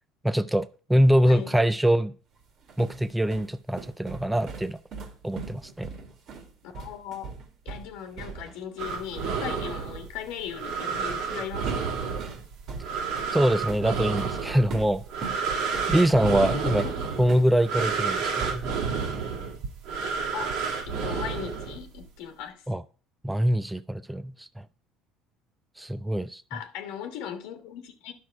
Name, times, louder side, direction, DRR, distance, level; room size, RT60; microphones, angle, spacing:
voice 1, 0.2-2.1 2.8-4.8 5.2-5.9 13.3-15.4 15.9-16.8 17.2-18.8 22.7-22.8 23.2-24.6 25.8-26.4, equal, 5° right, 0.4 m, -24 dB
sound 1, 2.4-8.6 8.9-9.1 11.1-11.3 11.7-18.0 18.4-19.3, right 5 dB, 50° right, 1.9 m, -40 dB
voice 2, 6.6-7.3 7.6-12.2 16.2-17.0 20.3-20.6 20.9-22.6 26.5-28.1, left 9 dB, 75° left, 1.3 m, -38 dB
sound 2, 8.8-22.1, right 5 dB, 75° right, 2.0 m, -31 dB
10.0 x 6.0 x 4.5 m
cardioid pair, 120°, 0 cm